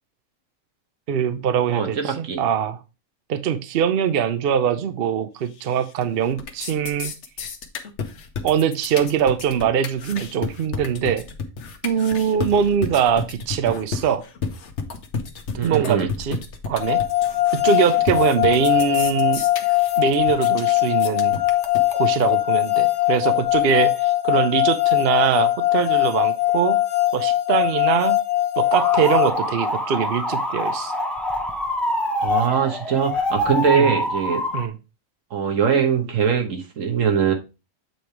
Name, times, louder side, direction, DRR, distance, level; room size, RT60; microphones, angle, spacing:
voice 1, 1.1-2.8 3.3-7.1 8.4-11.2 11.8-14.2 15.6-16.4 16.7-17.0 17.6-19.5 20.0-21.4 21.9-26.8 27.1-28.2 28.6-30.9 33.7-33.9 34.5-34.7, right 8 dB, 55° right, 11 dB, 0.7 m, -22 dB
voice 2, 1.7-2.4 15.6-16.1 32.2-34.4 35.3-37.3, right 7 dB, 75° right, 4 dB, 1.5 m, -22 dB
sound 1, 5.6-6.0 6.3-22.3, left 5 dB, 60° left, 1.2 m, -32 dB
sound 2, 16.8-29.3, left 16 dB, 80° left, 1.3 m, -21 dB
sound 3, 28.7-34.7, left 1 dB, ahead, 0.5 m, -25 dB
7.8 x 3.3 x 4.4 m, 0.29 s
omnidirectional pair, 1.4 m